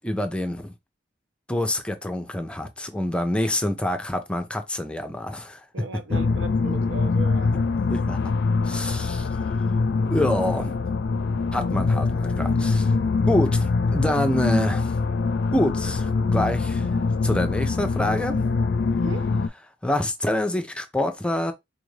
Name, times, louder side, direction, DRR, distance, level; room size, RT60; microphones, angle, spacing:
voice 1, 0.0-0.7 1.5-5.6 6.1-6.2 7.9-8.3 8.6-9.3 10.1-10.8 11.5-13.0 13.3-14.9 15.5-16.9 17.2-18.4 19.8-21.5, left 1 dB, 5° left, 0.5 m, -26 dB
voice 2, 5.7-7.7 19.0-19.3, right 2 dB, 75° right, 0.7 m, -37 dB
sound 1, 6.1-19.5, left 4 dB, 65° left, 0.4 m, -24 dB
4.4 x 2.6 x 3.2 m
head